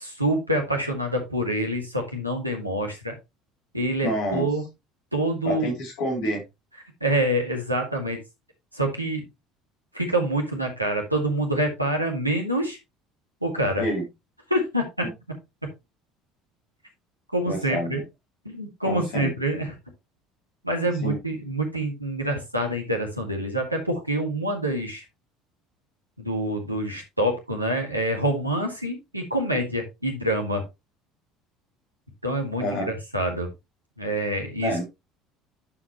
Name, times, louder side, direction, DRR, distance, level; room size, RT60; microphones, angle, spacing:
voice 1, 0.0-3.1 3.7-4.6 5.1-5.7 7.0-8.2 8.7-9.2 9.9-12.8 13.4-13.9 14.5-15.1 17.3-18.0 18.5-19.7 20.6-25.0 26.2-30.6 32.2-33.5 34.0-34.7, right 1 dB, 90° right, 1 dB, 1.9 m, -26 dB
voice 2, 4.0-4.4 5.4-6.4 13.8-14.0 17.4-18.0 18.8-19.3 21.0-21.2 32.6-32.9 34.6-34.8, equal, 60° left, -1 dB, 3.2 m, -28 dB
11.0 x 5.0 x 3.0 m, 0.23 s
figure-of-eight pair, 60°, 0 cm